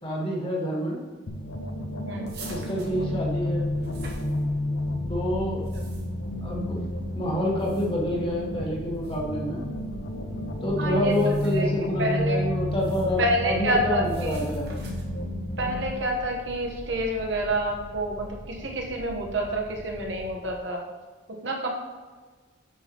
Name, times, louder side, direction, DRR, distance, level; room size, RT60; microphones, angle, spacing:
voice 1, 0.0-1.0 2.5-3.7 5.1-5.6 6.4-6.8 7.1-9.6 10.6-14.8, equal, 25° left, -3 dB, 1.4 m, -28 dB
sound 1, 1.3-15.9, left 1 dB, 80° left, 0.8 m, -31 dB
sound 2, 2.3-4.9 5.4-6.3 7.4-8.1 8.9-9.2 11.0-11.7 12.7-13.2 14.0-15.2, right 2 dB, 55° right, 1.5 m, -45 dB
sound 3, 2.9-20.6, equal, 10° right, 0.5 m, -43 dB
voice 2, 10.8-11.1 11.5-11.7 12.0-12.4 13.2-14.4 15.6-20.8 21.4-21.7, right 1 dB, 70° right, 1 dB, 1.3 m, -28 dB
8.8 x 6.3 x 3.0 m, 1.4 s
head